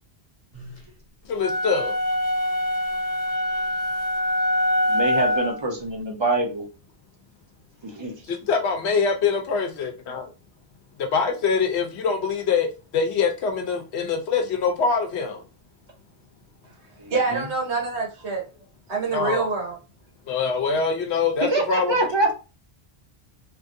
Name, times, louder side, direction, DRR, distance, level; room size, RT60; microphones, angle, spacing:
voice 1, 1.2-1.9 8.3-10.2 11.1-12.7 12.9-15.4 19.1-19.5 20.3-22.0, left 5 dB, 85° left, 1.0 m, -24 dB
sound 1, 1.4-5.6, equal, 40° left, 0.9 m, -24 dB
voice 2, 4.9-6.7 7.8-8.1 17.0-17.4 21.4-22.3, right 2 dB, 30° right, 0.7 m, -25 dB
voice 3, 17.1-18.5 18.9-19.8, right 4 dB, 90° right, 1.4 m, -26 dB
3.0 x 2.6 x 2.6 m
omnidirectional pair, 1.1 m